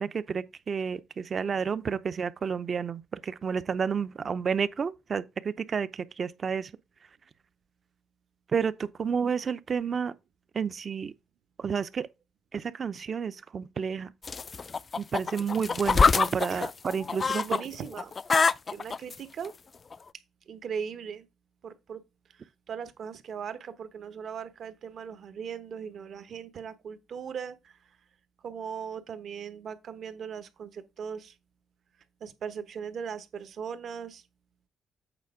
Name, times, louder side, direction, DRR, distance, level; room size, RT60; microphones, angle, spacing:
voice 1, 0.0-6.7 8.5-10.1 10.5-11.1 11.6-12.1 12.5-14.1 15.0-17.4, right 6 dB, 45° right, 0.6 m, -30 dB
sound 1, 14.2-17.6 17.9-19.1 19.9-20.0, left 5 dB, 35° left, 0.3 m, -25 dB
voice 2, 17.4-18.1 18.7-19.5 20.5-21.3 21.6-22.0 22.3-27.9 28.4-31.4 32.2-34.2, right 7 dB, 60° right, 1.1 m, -39 dB
8.2 x 4.4 x 4.9 m
cardioid pair, 90°, 0 cm